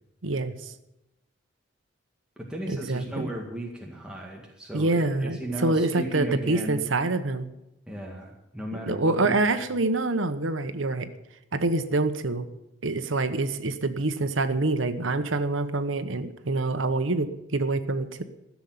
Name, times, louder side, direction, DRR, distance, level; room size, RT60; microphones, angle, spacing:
voice 1, 0.2-0.7 2.7-3.3 4.7-7.5 8.9-11.1 11.5-12.5 12.8-18.2, right 2 dB, 85° right, 10 dB, 1.0 m, -26 dB
voice 2, 2.4-6.8 7.9-9.3, right 1 dB, 5° right, -2 dB, 1.8 m, -35 dB
14.5 x 7.2 x 9.5 m, 0.89 s
head